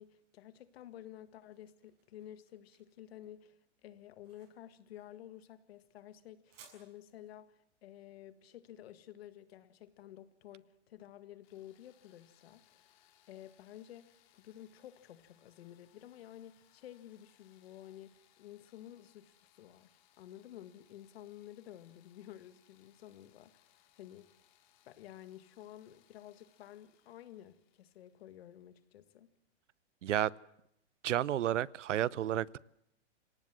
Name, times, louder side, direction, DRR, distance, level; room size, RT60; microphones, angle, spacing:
voice 1, 0.0-13.0 13.3-24.3 24.9-29.3, left 12 dB, 55° left, 1.9 m, -52 dB
sound 1, 1.3-10.0, right 6 dB, 30° right, 6.5 m, -66 dB
sound 2, 11.4-29.1, left 12 dB, 40° left, 2.7 m, -70 dB
voice 2, 30.0-30.3 31.0-32.6, right 11 dB, 80° right, 0.8 m, -31 dB
26.5 x 17.5 x 7.6 m
hypercardioid pair, 155°, 36 cm